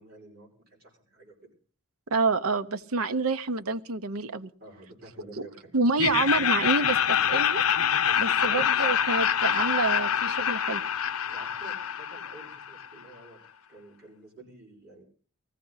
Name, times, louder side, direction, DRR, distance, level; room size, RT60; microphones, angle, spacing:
voice 1, 0.0-1.5 4.6-5.7 8.0-8.6 10.0-10.2 11.3-15.0, right 2 dB, 45° right, -2 dB, 5.8 m, -49 dB
voice 2, 2.1-4.5 5.4-5.5 5.7-7.6 8.2-10.8, right 3 dB, 80° right, 9 dB, 0.8 m, -27 dB
Laughter, 6.0-12.9, left 9 dB, 80° left, 0.6 m, -26 dB
19.0 x 14.5 x 4.0 m, 0.42 s
head